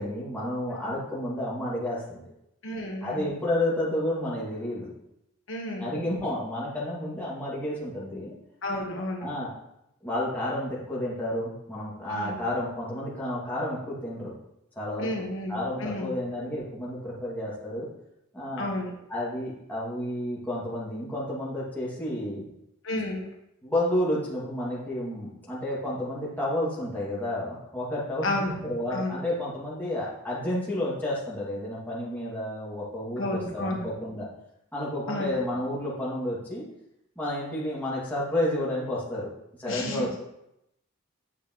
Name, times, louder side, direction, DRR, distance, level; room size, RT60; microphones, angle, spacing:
voice 1, 0.0-2.2 3.0-4.9 5.8-8.3 9.2-9.5 10.0-14.3 14.8-15.1 15.5-17.9 18.3-18.7 19.1-22.4 23.6-33.2 33.5-34.3 34.7-36.6 37.2-39.3 39.6-40.2, left 1 dB, 10° left, -7 dB, 2.2 m, -31 dB
voice 2, 2.6-3.3 5.5-5.9 8.6-9.3 12.1-12.4 15.0-16.1 18.6-18.9 22.8-23.2 28.2-28.6 28.9-29.2 33.2-33.9 35.1-35.4 39.7-40.1, left 1 dB, 65° left, 0 dB, 1.3 m, -31 dB
9.0 x 6.7 x 3.1 m, 0.82 s
head